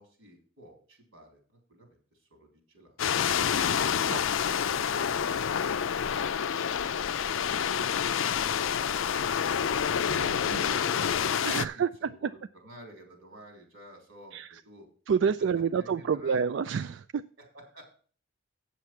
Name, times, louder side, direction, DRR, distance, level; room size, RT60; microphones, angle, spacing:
voice 1, 0.0-3.0 4.4-6.1 6.9-8.7 10.4-14.4 14.6-14.9 15.8-16.4 17.4-17.9, right 1 dB, 90° right, 3 dB, 3.6 m, -51 dB
sound 1, 3.0-11.7, left 8 dB, 80° left, 0.4 m, -28 dB
voice 2, 10.1-10.7 11.4-12.3 14.3-14.6 15.1-17.2, right 6 dB, 65° right, 13 dB, 0.3 m, -29 dB
8.2 x 7.3 x 5.8 m, 0.44 s
head